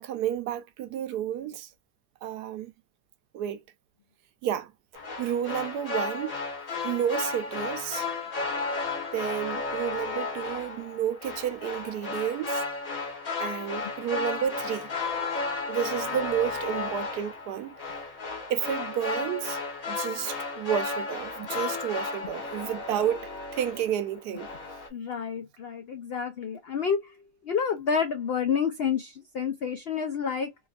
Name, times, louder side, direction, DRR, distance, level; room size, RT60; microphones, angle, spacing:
voice 1, 0.0-1.7 2.2-2.7 3.3-3.6 4.4-4.7 5.2-6.4 6.8-8.1 9.1-12.6 13.4-14.9 15.7-17.8 18.5-19.6 19.9-24.5, right 10 dB, 85° right, 1.2 m, -31 dB
sound 1, 4.9-24.1 24.4-24.9, left 3 dB, 60° left, 2.1 m, -33 dB
voice 2, 24.9-27.2 27.4-30.5, left 6 dB, 85° left, 0.5 m, -29 dB
4.1 x 2.4 x 2.4 m
omnidirectional pair, 1.7 m